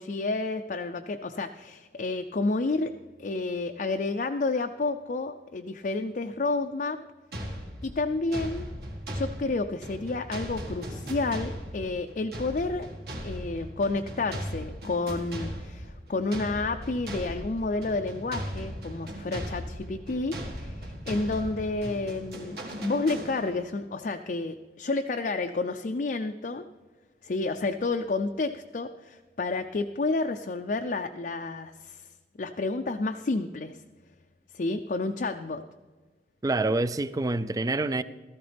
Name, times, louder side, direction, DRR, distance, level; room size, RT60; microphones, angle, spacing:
voice 1, 0.0-2.9 3.2-7.0 7.8-8.7 9.1-12.9 13.2-26.6 27.2-32.1 32.4-33.7 34.5-35.6, left 3 dB, 45° left, 0.4 m, -30 dB
sound 1, 7.3-23.8, equal, 60° right, 1.8 m, -38 dB
voice 2, 36.4-38.0, right 2 dB, 20° right, 0.3 m, -26 dB
16.0 x 14.0 x 3.4 m
head